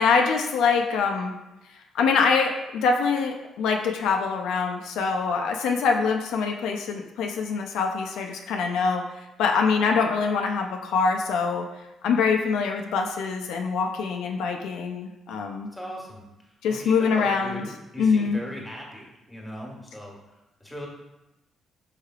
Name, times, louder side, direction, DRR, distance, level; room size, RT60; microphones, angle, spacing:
voice 1, 0.0-1.3 1.9-9.1 9.4-11.7 12.0-15.7 16.6-17.6 18.0-18.4, left 5 dB, 85° left, 3 dB, 0.4 m, -24 dB
voice 2, 15.7-20.2 20.6-20.9, equal, 5° left, -2 dB, 1.3 m, -39 dB
5.5 x 3.2 x 2.3 m, 0.95 s
cardioid pair, 90°, 0 cm